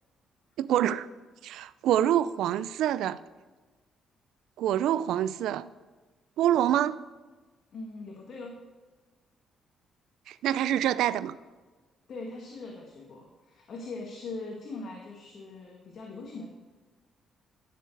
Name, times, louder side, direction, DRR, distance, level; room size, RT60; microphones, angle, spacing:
voice 1, 0.6-1.1 1.4-3.2 4.6-5.7 6.4-7.0 10.3-11.4, right 11 dB, 85° right, 0.4 m, -26 dB
voice 2, 7.7-8.6 12.1-16.5, left 3 dB, 60° left, 1.8 m, -41 dB
13.0 x 6.9 x 4.7 m
cardioid pair, 90°, 0 cm